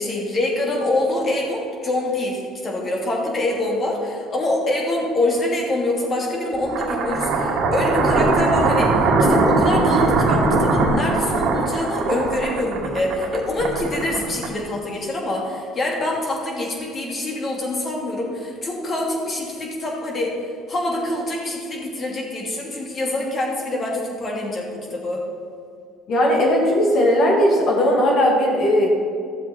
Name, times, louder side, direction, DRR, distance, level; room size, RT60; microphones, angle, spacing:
voice 1, 0.0-20.3 20.7-25.2, left 1 dB, 40° left, -1 dB, 2.7 m, -25 dB
sound 1, 6.6-14.8, right 3 dB, 65° right, 1.7 m, -20 dB
voice 2, 26.1-28.9, equal, 55° left, -2 dB, 2.8 m, -17 dB
13.5 x 7.3 x 4.3 m, 2.3 s
supercardioid pair, 85°, 0 cm